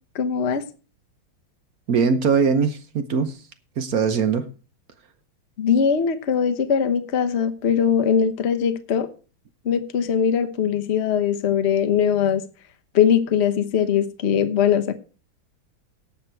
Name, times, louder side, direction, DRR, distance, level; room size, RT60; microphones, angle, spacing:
voice 1, 0.1-0.6 5.6-9.1 9.6-12.4 12.9-14.9, left 7 dB, 45° left, 0.9 m, -21 dB
voice 2, 1.9-3.4 3.8-4.5, right 5 dB, 55° right, 1.1 m, -21 dB
17.5 x 6.0 x 4.5 m
omnidirectional pair, 2.3 m